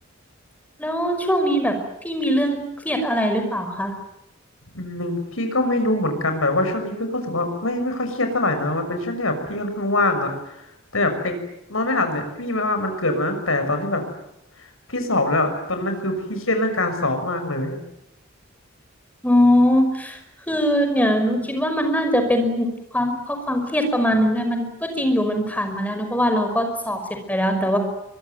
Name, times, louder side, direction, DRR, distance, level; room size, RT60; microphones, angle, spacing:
voice 1, 0.8-1.8 2.0-3.9 19.2-20.2 20.5-22.7 22.9-27.0 27.3-27.8, equal, 10° left, 6 dB, 5.5 m, -21 dB
voice 2, 4.7-10.6 10.9-11.3 11.7-14.0 14.9-17.8, left 2 dB, 85° left, 6 dB, 6.4 m, -23 dB
24.5 x 22.5 x 9.5 m, 0.83 s
head